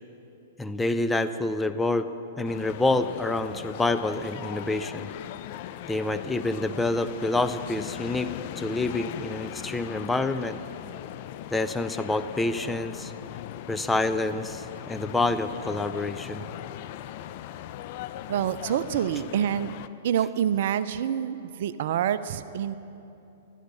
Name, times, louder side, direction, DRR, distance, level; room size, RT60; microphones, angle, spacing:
voice 1, 0.6-2.1 2.4-5.1 5.9-10.6 11.5-13.1 13.7-16.4, left 2 dB, 10° left, 10 dB, 0.6 m, -27 dB
sound 1, 2.4-19.9, left 12 dB, 50° left, 0.5 m, -39 dB
voice 2, 18.3-19.7 20.0-22.8, right 9 dB, 60° right, 14 dB, 0.5 m, -27 dB
16.5 x 11.5 x 5.5 m, 2.9 s
hypercardioid pair, 115°, 0 cm